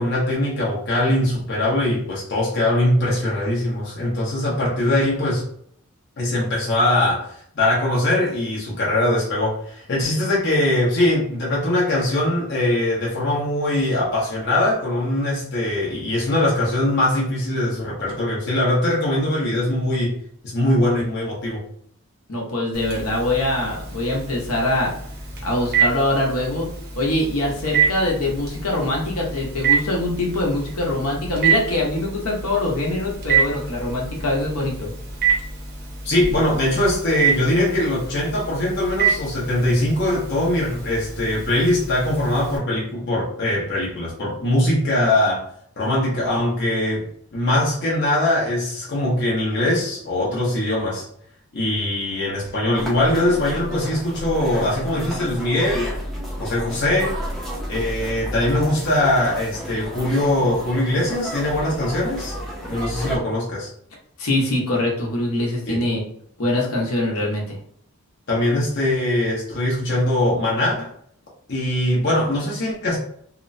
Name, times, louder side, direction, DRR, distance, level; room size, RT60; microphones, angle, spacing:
voice 1, 0.0-5.4 6.2-20.1 20.4-21.6 36.0-45.4 45.8-47.1 47.3-51.1 51.5-55.9 56.4-57.2 57.7-62.3 62.7-63.7 65.7-65.8 68.3-70.9 71.5-73.0, left 1 dB, 50° left, -5 dB, 0.7 m, -21 dB
voice 2, 22.3-24.9 25.4-26.7 27.0-34.9 64.2-66.0 66.4-67.6, left 1 dB, 75° left, -2 dB, 0.8 m, -23 dB
Telephone, 22.7-42.6, right 6 dB, 45° right, 0.7 m, -27 dB
sound 1, 52.7-63.2, equal, ahead, 0.4 m, -31 dB
2.8 x 2.0 x 2.5 m, 0.65 s
head